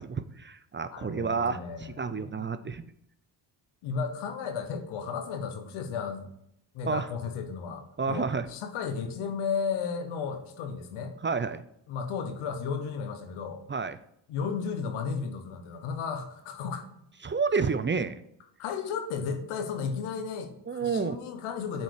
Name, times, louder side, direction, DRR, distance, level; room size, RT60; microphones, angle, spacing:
voice 1, 0.0-2.8 6.8-7.1 8.0-8.5 11.2-11.6 13.7-14.0 17.2-18.1 20.7-21.2, right 5 dB, 25° right, 12 dB, 0.5 m, -30 dB
voice 2, 0.9-2.5 3.8-6.3 6.7-11.1 11.9-13.6 14.3-16.8 18.6-20.5 20.8-21.8, left 6 dB, 90° left, 7 dB, 1.1 m, -34 dB
8.1 x 4.5 x 4.8 m, 0.75 s
supercardioid pair, 55°, 48 cm